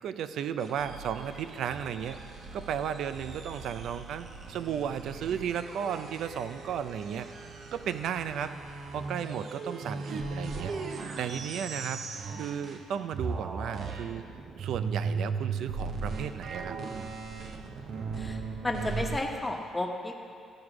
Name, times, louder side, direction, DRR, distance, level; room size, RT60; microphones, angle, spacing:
voice 1, 0.0-2.2 2.5-7.3 7.7-10.7 11.2-14.2 14.6-16.8, right 8 dB, 75° right, 11 dB, 0.4 m, -34 dB
sound 1, 0.6-12.9 13.1-19.2, right 4 dB, 60° right, 0.8 m, -38 dB
voice 2, 18.2-20.1, left 2 dB, 15° left, 2 dB, 1.1 m, -33 dB
14.0 x 4.8 x 6.0 m, 2.4 s
cardioid pair, 90°, 0 cm